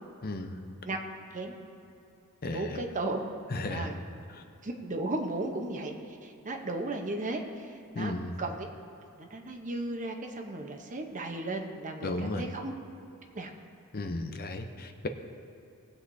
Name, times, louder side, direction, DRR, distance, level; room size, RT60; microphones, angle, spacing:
voice 1, 0.2-0.6 2.4-2.8 3.5-3.9 4.3-4.4 8.0-8.3 12.0-12.5 13.9-15.1, left 2 dB, 45° left, 6 dB, 0.7 m, -34 dB
voice 2, 2.5-3.2 3.7-4.0 4.6-8.1 8.4-8.7 9.2-12.7 13.3-13.5, right 2 dB, 35° right, 3 dB, 0.9 m, -35 dB
19.0 x 8.0 x 2.7 m, 2.8 s
head